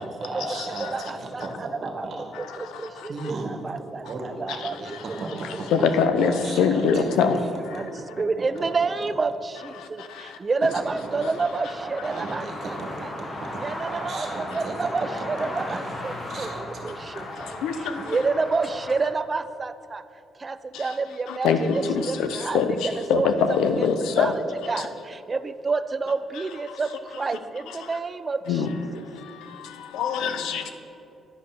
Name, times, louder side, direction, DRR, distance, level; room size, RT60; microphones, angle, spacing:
voice 1, 0.0-2.2 3.1-5.7 6.2-7.1 7.7-7.9 10.7-11.2 11.8-14.7 15.2-15.3 15.7-15.9 16.3-16.8 17.2-17.4, right 2 dB, 60° right, 2 dB, 1.7 m, -36 dB
voice 2, 0.8-2.1 2.4-5.2 5.5-5.6 7.0-7.9 8.2-13.1 13.6-20.0 20.4-23.9 24.2-24.3 24.7-28.8, right 4 dB, 30° right, 13 dB, 0.3 m, -29 dB
voice 3, 5.8-7.3 17.6-17.7 21.4-21.6 22.5-22.7 23.1-24.3 28.5-28.7 30.0-30.7, left 6 dB, 90° left, 8 dB, 0.6 m, -21 dB
sound 1, 10.6-18.9, left 1 dB, 40° left, 1.4 m, -36 dB
10.0 x 5.4 x 6.0 m, 2.7 s
cardioid pair, 90°, 0 cm